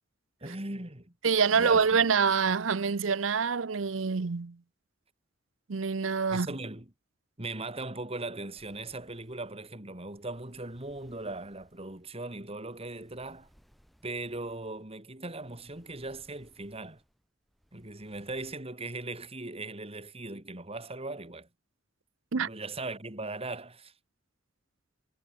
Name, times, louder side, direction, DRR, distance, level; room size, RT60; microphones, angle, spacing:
voice 1, 0.4-1.1 1.5-2.1 6.3-6.9 7.4-13.5 14.0-17.0 17.7-21.5 22.3-23.9, right 2 dB, 30° right, 3.3 m, -39 dB
voice 2, 1.2-4.6 5.7-6.5 22.3-22.5, right 5 dB, 85° right, 0.7 m, -26 dB
sound 1, 8.5-18.5, equal, ahead, 6.4 m, -65 dB
head